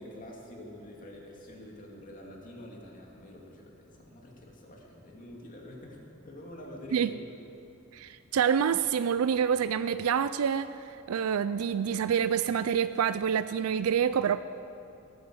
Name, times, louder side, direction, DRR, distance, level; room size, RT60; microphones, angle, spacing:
voice 1, 0.0-7.4, left 1 dB, 40° left, -1 dB, 2.6 m, -47 dB
voice 2, 7.9-14.4, right 7 dB, 85° right, 14 dB, 0.4 m, -27 dB
17.5 x 9.5 x 7.8 m, 2.8 s
head